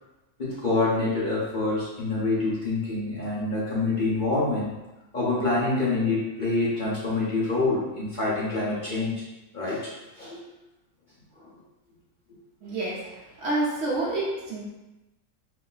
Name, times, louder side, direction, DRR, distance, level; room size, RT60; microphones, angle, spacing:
voice 1, 0.4-4.8 5.1-9.2 9.5-10.4 11.4-11.5, left 3 dB, 35° left, -8 dB, 0.9 m, -26 dB
voice 2, 12.6-13.0 13.4-14.6, right 2 dB, 60° right, -5 dB, 1.1 m, -28 dB
4.5 x 2.2 x 3.9 m, 1.0 s
omnidirectional pair, 1.6 m